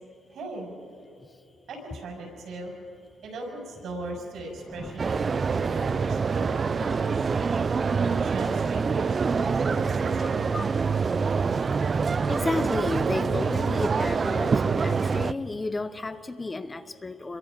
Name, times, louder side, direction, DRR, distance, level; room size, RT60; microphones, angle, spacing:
voice 1, 0.3-0.7 1.7-2.7 3.2-7.2 7.9-10.5, right 2 dB, 75° right, 0 dB, 6.1 m, -38 dB
sound 1, 4.5-5.1 6.9-7.6 7.9-8.0, equal, 10° right, 2.1 m, -45 dB
sound 2, 5.0-15.3, right 5 dB, 40° right, 0.4 m, -25 dB
voice 2, 10.5-11.7 12.3-17.4, left 2 dB, 25° left, 11 dB, 0.8 m, -32 dB
26.5 x 23.0 x 5.2 m, 2.5 s
cardioid pair, 90°, 0 cm